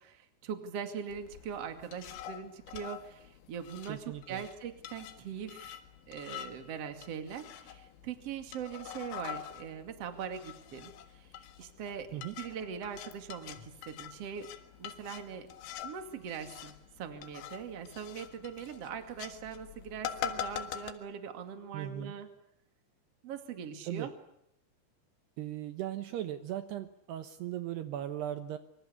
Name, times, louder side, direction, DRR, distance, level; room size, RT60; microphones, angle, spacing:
voice 1, 0.0-5.8 6.1-11.3 11.6-14.5 14.8-15.5 15.8-22.3 23.2-24.1, right 7 dB, 40° right, 7 dB, 2.7 m, -41 dB
sound 1, 1.1-20.9, left 10 dB, 85° left, 4.0 m, -45 dB
voice 2, 3.9-4.4 12.1-12.4 21.7-22.1 23.9-24.1 25.4-28.6, right 12 dB, 70° right, 9 dB, 3.0 m, -38 dB
25.5 x 25.5 x 8.6 m, 0.76 s
omnidirectional pair, 5.2 m